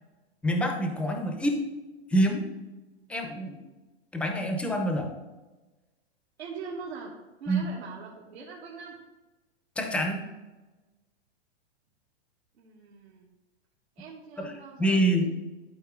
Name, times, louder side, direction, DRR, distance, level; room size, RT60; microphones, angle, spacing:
voice 1, 0.4-1.6 2.1-2.5 3.1-3.6 4.1-5.1 7.5-7.6 9.8-10.3 14.4-14.5 14.8-15.3, right 1 dB, 5° left, 4 dB, 0.6 m, -26 dB
voice 2, 6.4-7.1 7.4-9.0 12.6-13.3 14.0-15.3, right 5 dB, 80° right, -4 dB, 1.6 m, -42 dB
11.5 x 4.2 x 3.7 m, 1.1 s
hypercardioid pair, 150°, 32 cm